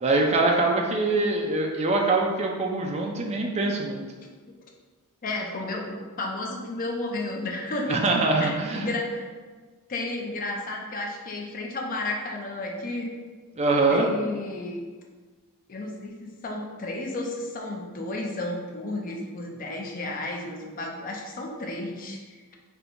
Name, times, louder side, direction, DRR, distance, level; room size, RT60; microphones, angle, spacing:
voice 1, 0.0-4.0 7.9-8.9 13.6-14.1, right 3 dB, 30° right, 1 dB, 0.4 m, -23 dB
voice 2, 5.2-8.0 8.4-9.3 9.9-13.1 13.9-14.8 15.7-22.2, left 2 dB, 40° left, 1 dB, 0.4 m, -32 dB
4.3 x 2.2 x 2.6 m, 1.4 s
head